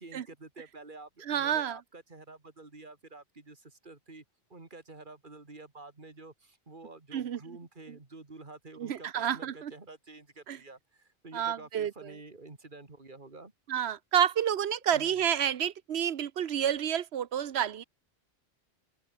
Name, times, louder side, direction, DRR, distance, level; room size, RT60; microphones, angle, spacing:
voice 1, 0.0-4.2 4.5-13.5 14.9-15.1, right 3 dB, 50° right, 2.7 m, -49 dB
voice 2, 1.2-1.8 7.1-7.6 7.9-8.0 8.8-9.7 10.5-10.6 11.3-12.2 13.7-17.8, right 9 dB, 80° right, 1.1 m, -30 dB
open air
omnidirectional pair, 1.1 m